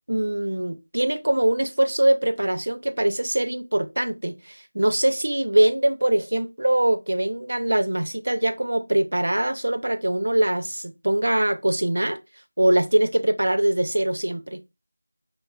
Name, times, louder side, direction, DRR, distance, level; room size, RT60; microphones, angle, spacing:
voice 1, 0.1-12.2 12.6-14.6, right 1 dB, 70° right, 0.6 m, -22 dB
5.3 x 3.3 x 2.3 m
figure-of-eight pair, 170°, 0 cm